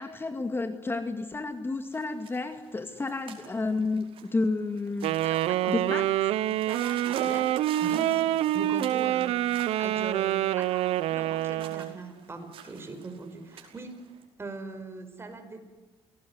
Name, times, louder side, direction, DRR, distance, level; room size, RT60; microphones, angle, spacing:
voice 1, 0.0-5.2 5.7-6.1, left 3 dB, 25° left, 8 dB, 2.1 m, -31 dB
sound 1, 1.9-14.2, right 6 dB, 65° right, 5.2 m, -47 dB
Wind instrument woodwind instrument, 5.0-12.0, right 13 dB, 80° right, 0.9 m, -26 dB
voice 2, 5.2-6.0 6.4-15.7, right 3 dB, 25° right, 7 dB, 5.3 m, -41 dB
28.5 x 18.5 x 9.7 m, 1.3 s
cardioid pair, 100°, 10 cm